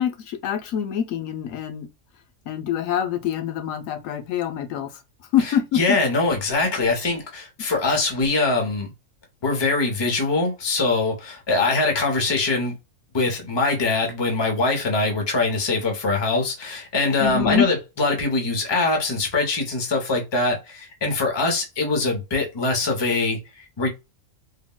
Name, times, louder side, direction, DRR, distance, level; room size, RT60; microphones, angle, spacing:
voice 1, 0.0-1.9 2.5-4.9 5.3-6.0 17.2-17.7, left 9 dB, 85° left, 1.0 m, -25 dB
voice 2, 5.4-8.9 9.4-12.7 13.1-23.9, left 3 dB, 25° left, 0.7 m, -23 dB
3.6 x 2.1 x 2.2 m
omnidirectional pair, 1.4 m